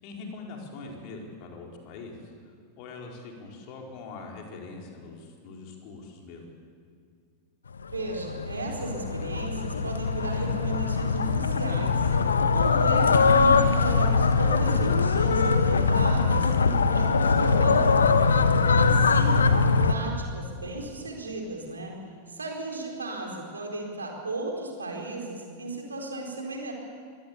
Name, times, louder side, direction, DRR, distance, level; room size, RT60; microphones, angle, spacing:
voice 1, 0.0-6.4, left 3 dB, 45° left, 0 dB, 4.5 m, -43 dB
sound 1, 7.9-19.9, left 4 dB, 70° left, 1.1 m, -22 dB
voice 2, 7.9-18.1 18.8-19.5 19.8-22.0 22.3-26.7, right 2 dB, 75° right, 1 dB, 4.4 m, -35 dB
23.5 x 17.5 x 8.4 m, 2.2 s
figure-of-eight pair, 90°, 0 cm